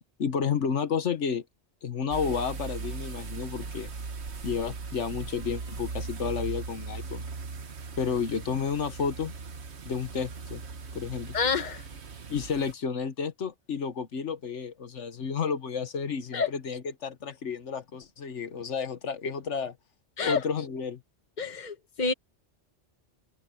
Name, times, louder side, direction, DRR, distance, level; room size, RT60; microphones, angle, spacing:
voice 1, 0.2-1.4 1.8-3.9 4.4-7.3 8.0-9.3 9.8-10.6 10.9-11.3 12.3-19.8 20.2-21.0, left 6 dB, 90° left, 1.5 m, -31 dB
sound 1, 2.1-12.7, right 4 dB, 70° right, 1.5 m, -39 dB
voice 2, 11.3-11.8 16.3-16.5 20.2-20.4 21.4-22.1, left 5 dB, 40° left, 1.4 m, -28 dB
open air
omnidirectional pair, 1.2 m